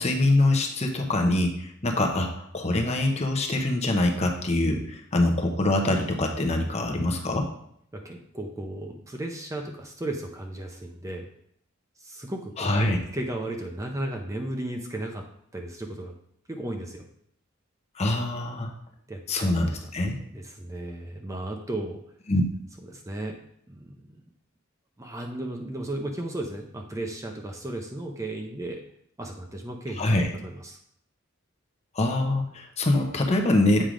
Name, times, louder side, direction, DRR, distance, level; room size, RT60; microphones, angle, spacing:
voice 1, 0.0-7.5 12.6-13.0 18.0-18.7 19.3-20.1 22.3-22.4 30.0-30.3 31.9-33.8, left 2 dB, 30° left, 3 dB, 0.8 m, -24 dB
voice 2, 7.9-11.3 12.0-15.2 15.5-16.1 16.5-17.0 19.1-19.5 20.3-22.0 22.9-23.4 23.7-24.2 25.0-28.8 29.2-30.8, right 1 dB, 15° right, 2 dB, 0.6 m, -35 dB
7.5 x 3.4 x 5.0 m, 0.69 s
head